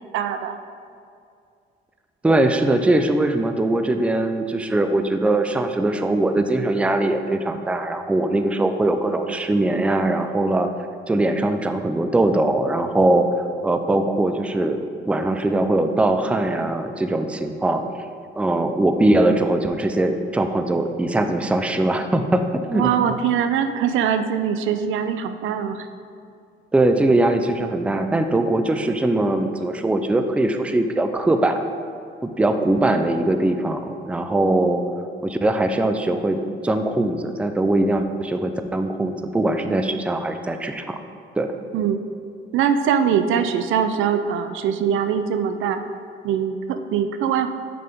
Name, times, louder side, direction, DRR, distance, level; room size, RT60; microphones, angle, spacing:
voice 1, 0.1-0.6 22.7-25.9 41.7-42.0 42.5-45.8 46.2-47.5, right 8 dB, 80° right, 9 dB, 0.4 m, -22 dB
voice 2, 2.2-10.7 11.1-17.8 18.4-22.9 26.7-31.6 32.2-34.8 35.2-41.0 41.4-41.5, right 2 dB, 5° right, 7 dB, 0.4 m, -21 dB
6.7 x 5.1 x 3.5 m, 2.4 s
cardioid pair, 90°, 20 cm